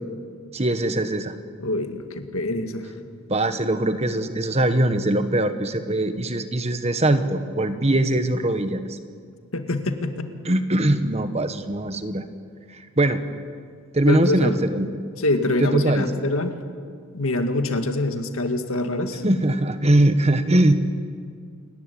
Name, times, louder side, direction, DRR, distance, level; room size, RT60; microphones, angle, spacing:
voice 1, 0.5-1.3 3.3-9.0 10.4-12.2 12.7-13.2 13.9-14.9 15.6-16.1 19.2-21.0, right 1 dB, 30° right, 9 dB, 1.2 m, -21 dB
voice 2, 1.6-2.9 9.5-10.3 14.1-14.5 15.2-16.6 17.1-19.2, left 2 dB, 75° left, 6 dB, 2.0 m, -25 dB
28.0 x 15.0 x 10.0 m, 2.1 s
head